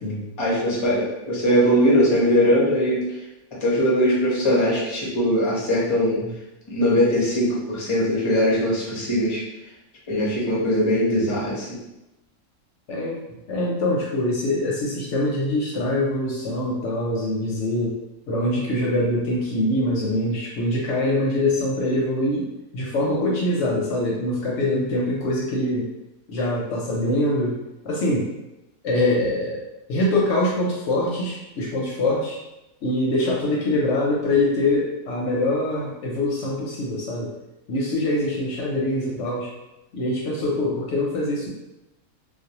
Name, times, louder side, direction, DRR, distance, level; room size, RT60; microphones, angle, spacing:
voice 1, 0.4-3.0 3.6-6.2 6.7-9.4 10.1-11.8, equal, 40° left, -5 dB, 0.4 m, -20 dB
voice 2, 12.9-13.2 13.5-18.0 18.3-22.5 22.7-25.9 26.3-27.6 27.8-28.3 28.8-29.6 29.9-32.4 32.8-37.3 37.7-39.5 39.9-41.5, left 1 dB, 65° left, -3 dB, 0.8 m, -24 dB
2.4 x 2.1 x 2.8 m, 0.94 s
omnidirectional pair, 1.5 m